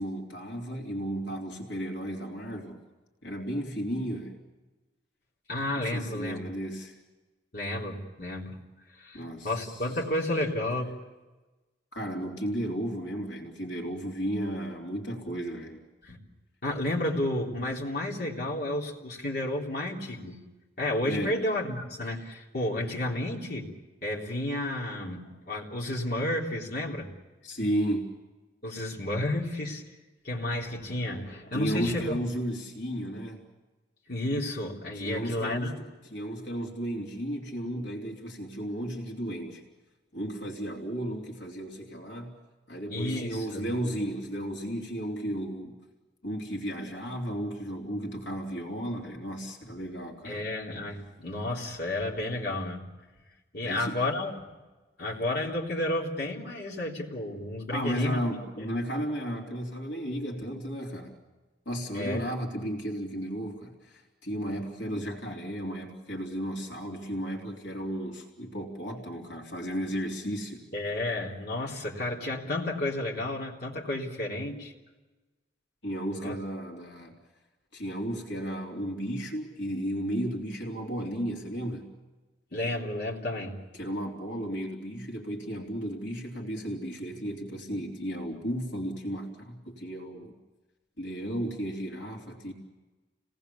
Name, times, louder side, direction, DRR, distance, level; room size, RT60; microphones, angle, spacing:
voice 1, 0.0-2.8 3.2-4.4 5.8-7.0 9.1-9.8 11.9-15.8 21.1-21.4 27.4-28.1 31.5-33.4 35.0-39.6 40.1-42.4 42.7-45.8 46.2-50.5 53.6-54.0 57.7-61.2 61.7-70.6 75.8-77.1 77.7-81.9 83.7-90.3 91.0-92.5, equal, 75° left, 0 dB, 3.6 m, -34 dB
voice 2, 5.5-6.5 7.5-8.6 9.0-10.9 16.0-16.2 16.6-20.4 20.8-23.7 24.0-27.1 28.6-29.8 30.2-32.2 34.1-35.8 42.9-43.7 50.2-52.9 53.5-54.4 55.0-58.2 58.6-58.7 61.9-62.4 70.7-74.7 76.2-76.4 82.5-83.6, left 1 dB, 60° left, -3 dB, 3.7 m, -31 dB
29.5 x 19.0 x 7.1 m, 1.2 s
head